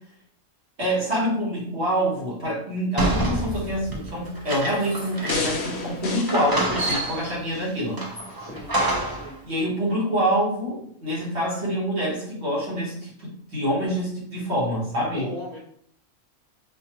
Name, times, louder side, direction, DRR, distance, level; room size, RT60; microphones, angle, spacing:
voice 1, 0.8-8.0 9.4-15.3, equal, 55° right, -5 dB, 1.5 m, -26 dB
sound 1, 3.0-5.7 6.0-6.1 6.3-7.4 8.0-9.3, right 1 dB, 35° right, 0.3 m, -27 dB
sound 2, 5.3-7.8 8.3-8.4, left 3 dB, 65° left, 0.8 m, -32 dB
voice 2, 8.4-8.8 9.1-9.4 15.1-15.6, left 1 dB, 35° left, -4 dB, 0.9 m, -37 dB
4.4 x 2.3 x 2.9 m, 0.67 s
omnidirectional pair, 1.4 m